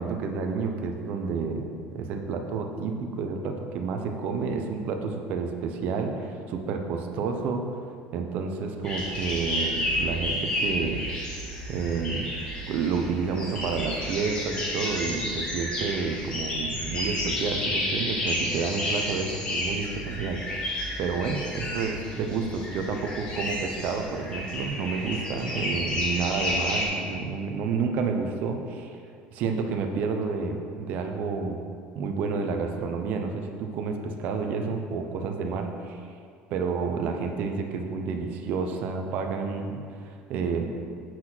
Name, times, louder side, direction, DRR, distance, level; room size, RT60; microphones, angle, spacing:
voice 1, 0.0-7.6 8.1-11.0 11.7-12.3 12.7-29.0 29.3-31.7 31.9-36.0 36.5-40.7, right 5 dB, 45° right, 4 dB, 0.9 m, -30 dB
sound 1, 8.8-26.8, left 1 dB, 25° left, 1.6 m, -31 dB
8.4 x 6.0 x 6.2 m, 2.3 s
cardioid pair, 180°, 4 cm